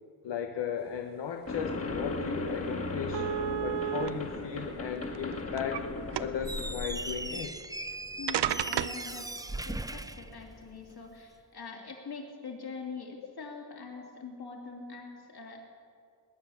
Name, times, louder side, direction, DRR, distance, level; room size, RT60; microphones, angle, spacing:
voice 1, 0.2-3.3 3.6-5.9 6.2-7.5, left 7 dB, 85° left, 4 dB, 1.0 m, -36 dB
sound 1, 1.5-7.5, left 2 dB, 35° left, 1.9 m, -36 dB
sound 2, 2.0-2.1 2.5-2.6 3.1-4.1 5.0-5.8 6.1-6.5 7.6-7.7 8.3-9.0, right 11 dB, 75° right, 0.6 m, -32 dB
Squeak, 6.4-11.0, right 2 dB, 10° right, 0.6 m, -39 dB
voice 2, 8.2-9.3 9.6-15.6, left 4 dB, 65° left, 0 dB, 3.1 m, -43 dB
20.0 x 9.7 x 7.2 m, 2.3 s
cardioid pair, 80°, 41 cm